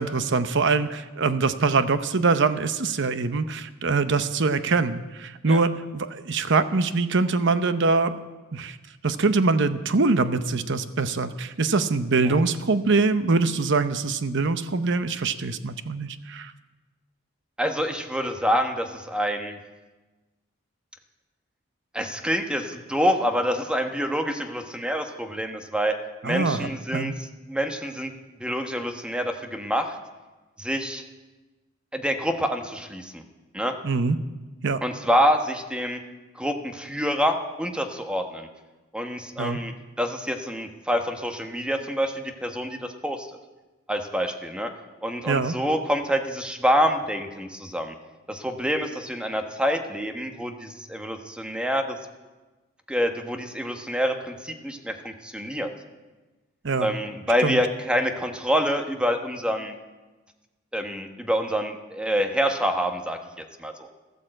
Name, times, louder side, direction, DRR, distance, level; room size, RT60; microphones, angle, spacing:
voice 1, 0.0-8.1 8.5-8.8 9.0-16.5 26.2-27.1 33.8-34.2 34.6-34.8 39.4-39.6 45.3-45.5 56.6-56.9 57.4-57.6, right 3 dB, 60° right, 11 dB, 0.9 m, -23 dB
voice 2, 17.6-19.6 21.9-26.0 26.2-27.1 27.5-28.1 28.4-30.0 30.6-31.0 31.9-33.2 33.5-33.7 34.8-36.0 36.3-38.5 38.9-43.3 43.9-44.7 45.0-47.9 48.3-52.0 52.9-55.7 56.8-59.7 60.7-63.9, equal, 5° right, 5 dB, 1.2 m, -26 dB
14.0 x 13.0 x 7.8 m, 1.2 s
head